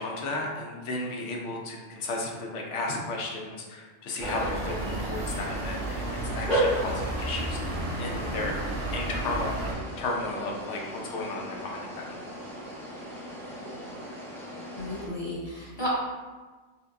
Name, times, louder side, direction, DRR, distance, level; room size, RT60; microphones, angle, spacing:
voice 1, 0.0-6.0 6.3-7.6 8.0-8.5 8.9-12.2, left 2 dB, 75° left, 0 dB, 1.0 m, -34 dB
sound 1, 4.2-15.1, right 1 dB, 5° left, 0.4 m, -35 dB
sound 2, 4.2-9.7, right 1 dB, 85° right, 1.1 m, -33 dB
voice 2, 14.7-15.9, left 1 dB, 25° left, -8 dB, 1.0 m, -34 dB
5.4 x 2.1 x 2.6 m, 1.3 s
omnidirectional pair, 1.3 m